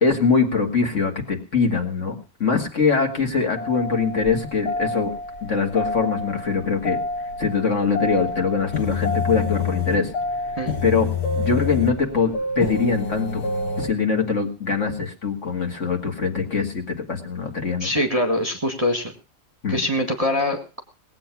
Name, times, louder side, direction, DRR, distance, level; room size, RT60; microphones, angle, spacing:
voice 1, 0.0-5.1 5.4-7.0 7.4-10.1 10.8-11.1 11.4-13.4 13.8-17.9 19.6-19.8, left 5 dB, 45° left, 4 dB, 2.3 m, -23 dB
sound 1, 3.6-13.9, left 3 dB, 60° left, 2.2 m, -28 dB
voice 2, 17.8-19.1 19.7-20.8, left 1 dB, 20° right, 4 dB, 1.4 m, -23 dB
19.0 x 8.3 x 5.9 m, 0.33 s
omnidirectional pair, 1.8 m